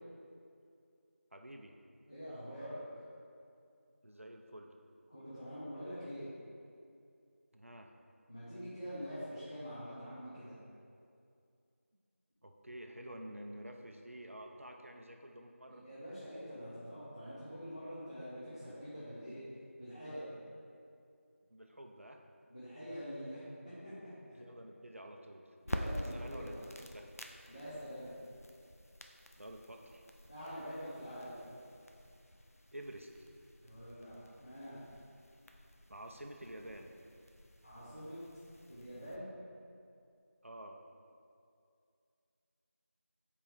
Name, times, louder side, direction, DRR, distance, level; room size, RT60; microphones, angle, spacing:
voice 1, 1.3-1.7 4.0-4.7 7.5-7.9 12.4-15.8 21.5-22.2 24.4-27.1 29.4-30.1 32.7-33.1 35.9-36.9 40.4-40.8, right 1 dB, 65° right, 2 dB, 0.6 m, -49 dB
voice 2, 2.1-3.0 5.1-6.3 8.3-10.6 15.8-19.4 19.8-20.3 22.5-24.4 25.6-26.6 27.5-28.1 30.3-31.4 33.6-34.9 37.6-38.2 38.7-39.3, equal, 25° left, -13 dB, 1.1 m, -45 dB
sound 1, 25.6-39.2, left 1 dB, 85° left, 0.6 m, -48 dB
7.4 x 4.6 x 3.4 m, 2.4 s
figure-of-eight pair, 180°, 8 cm